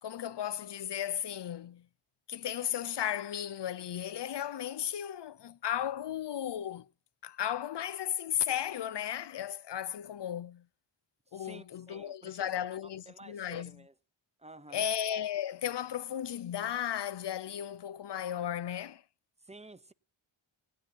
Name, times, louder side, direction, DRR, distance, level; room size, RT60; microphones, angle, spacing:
voice 1, 0.0-1.9 2.3-6.9 7.2-10.7 11.3-13.8 14.7-19.0, left 10 dB, 55° left, 0.6 m, -35 dB
voice 2, 11.3-12.7 13.1-13.9 14.4-14.9 19.4-19.9, right 2 dB, 15° right, 0.7 m, -51 dB
19.0 x 10.0 x 2.7 m
wide cardioid pair, 120°, 50 cm